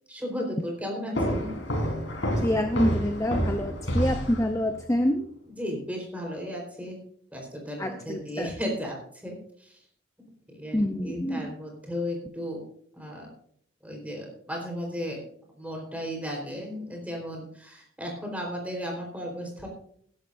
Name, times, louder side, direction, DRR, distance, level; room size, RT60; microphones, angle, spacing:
voice 1, 0.1-1.5 5.5-7.0 7.3-9.0 9.2-9.8 10.5-12.6 12.9-13.3 13.8-15.2 15.6-19.7, equal, 10° right, 0 dB, 4.2 m, -35 dB
sound 1, 1.1-4.8, equal, 70° left, 4.4 m, -29 dB
voice 2, 2.4-5.3 7.8-8.5 10.7-11.4, left 1 dB, 15° left, 6 dB, 0.6 m, -26 dB
18.5 x 11.5 x 2.6 m, 0.62 s
head